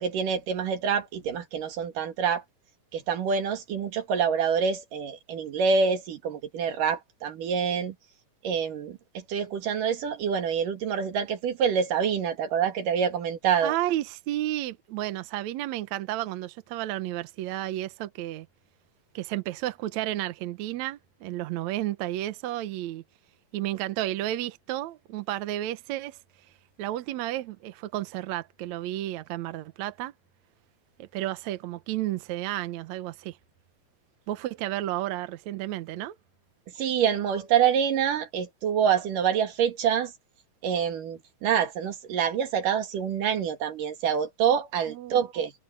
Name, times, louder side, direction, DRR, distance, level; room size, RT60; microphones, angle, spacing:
voice 1, 0.0-2.4 2.9-8.0 8.4-13.7 36.8-40.1 40.6-45.5, right 7 dB, 85° right, 3.7 m, -26 dB
voice 2, 13.6-18.5 19.2-23.0 23.5-26.2 26.8-30.1 31.0-33.4 34.3-36.2 44.9-45.2, right 14 dB, 70° right, 2.0 m, -32 dB
omnidirectional pair, 3.7 m